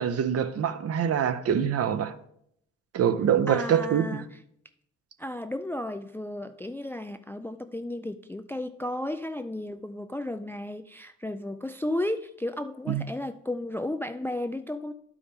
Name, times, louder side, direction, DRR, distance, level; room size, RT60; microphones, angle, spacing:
voice 1, 0.0-2.1 2.9-4.2 12.9-13.0, right 8 dB, 55° right, 0.7 m, -25 dB
voice 2, 3.5-4.2 5.2-14.9, left 1 dB, 10° left, 0.3 m, -33 dB
11.0 x 4.8 x 3.5 m
cardioid pair, 90°, 30 cm